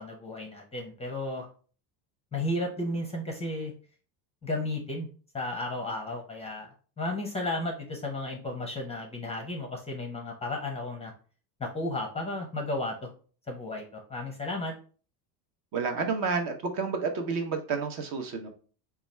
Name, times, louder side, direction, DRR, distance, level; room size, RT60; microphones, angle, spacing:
voice 1, 0.0-1.5 2.3-3.7 4.4-5.1 5.3-6.7 7.0-11.1 11.6-13.1 13.5-14.7, left 2 dB, 15° left, 2 dB, 0.5 m, -33 dB
voice 2, 15.7-18.5, right 5 dB, 45° right, 5 dB, 0.7 m, -30 dB
4.0 x 2.3 x 3.1 m, 0.40 s
cardioid pair, 125°, 46 cm